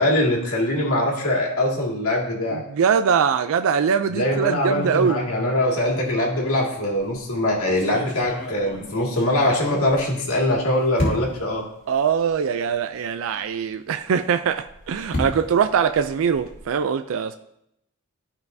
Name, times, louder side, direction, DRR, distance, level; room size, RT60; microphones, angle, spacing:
voice 1, 0.0-2.6 4.1-11.6, left 1 dB, 85° left, -1 dB, 2.1 m, -22 dB
voice 2, 2.5-5.2 11.9-17.4, right 7 dB, 65° right, 9 dB, 0.4 m, -22 dB
sound 1, 6.9-7.2 7.8-10.5 11.0-11.5 12.3-12.4 12.7-12.8 14.4-16.7, left 1 dB, 50° left, 3.2 m, -32 dB
13.5 x 5.7 x 2.7 m, 0.79 s
head